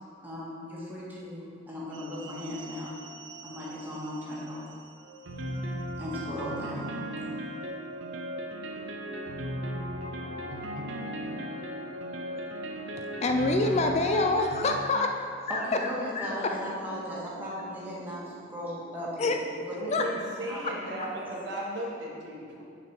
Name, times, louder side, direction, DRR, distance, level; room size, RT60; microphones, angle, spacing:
voice 1, 0.2-2.9 3.4-4.7 6.0-7.0 15.5-19.3 19.6-21.1, equal, 10° right, -7 dB, 1.6 m, -37 dB
sound 1, 1.9-14.8, equal, 90° right, 0.7 m, -37 dB
sound 2, 10.2-21.3, equal, 60° left, 0.8 m, -52 dB
voice 2, 13.0-15.1 15.4-16.6 19.2-19.4 19.9-20.0, left 2 dB, 35° left, 4 dB, 0.4 m, -27 dB
voice 3, 19.8-22.6, right 1 dB, 65° right, -3 dB, 1.3 m, -36 dB
7.2 x 5.1 x 4.7 m, 2.3 s
head